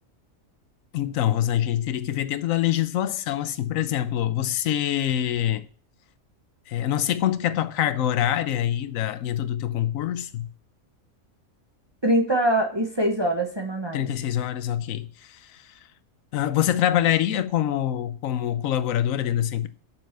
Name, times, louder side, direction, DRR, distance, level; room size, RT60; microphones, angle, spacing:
voice 1, 0.9-5.7 6.7-10.5 13.9-15.6 16.3-19.7, left 11 dB, 75° left, 1.1 m, -25 dB
voice 2, 12.0-14.1, right 1 dB, 20° right, 1.1 m, -23 dB
7.4 x 5.9 x 6.7 m
omnidirectional pair, 1.5 m